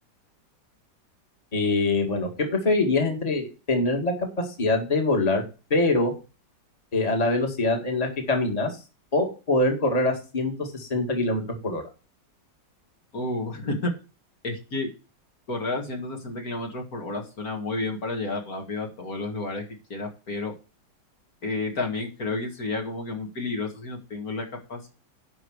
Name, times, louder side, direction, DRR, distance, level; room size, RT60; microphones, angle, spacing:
voice 1, 1.5-5.4 5.7-6.1 6.9-8.8 9.1-11.8, left 2 dB, 20° left, 3 dB, 1.9 m, -24 dB
voice 2, 13.1-13.9 14.4-14.9 15.5-19.6 19.9-20.5 21.4-24.9, left 2 dB, 50° left, 1 dB, 2.3 m, -31 dB
11.0 x 5.1 x 6.3 m, 0.33 s
omnidirectional pair, 2.0 m